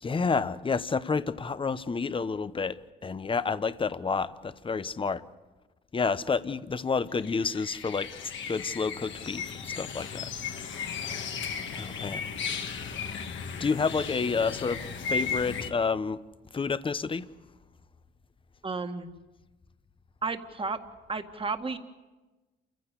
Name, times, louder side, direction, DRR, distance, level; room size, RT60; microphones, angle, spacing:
voice 1, 0.0-5.2 5.9-8.1 8.5-10.2 11.7-12.3 13.6-16.2 16.5-17.3, left 5 dB, 25° left, 14 dB, 0.9 m, -29 dB
sound 1, 7.2-15.7, left 5 dB, 70° left, 2.1 m, -35 dB
voice 2, 18.6-19.1 20.2-20.8 21.1-21.8, right 4 dB, 25° right, 6 dB, 1.9 m, -32 dB
28.5 x 15.5 x 8.3 m, 1.2 s
cardioid pair, 90°, 20 cm